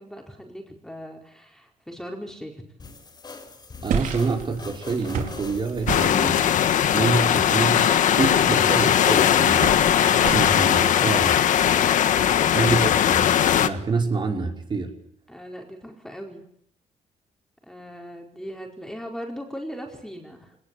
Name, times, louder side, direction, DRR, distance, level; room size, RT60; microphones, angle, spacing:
voice 1, 0.0-2.6 15.3-16.5 17.7-20.6, equal, 5° left, 2 dB, 4.8 m, -39 dB
sound 1, 2.8-10.0, left 3 dB, 30° left, 5.2 m, -42 dB
voice 2, 3.8-6.4 6.9-9.7 10.2-11.4 12.5-13.3 13.6-14.9, right 4 dB, 35° right, 2 dB, 5.7 m, -27 dB
sound 2, 3.9-10.6, right 6 dB, 85° right, 4.7 m, -33 dB
sound 3, 5.9-13.7, left 10 dB, 75° left, 1.6 m, -19 dB
26.0 x 20.0 x 8.7 m, 0.68 s
cardioid pair, 120°, 13 cm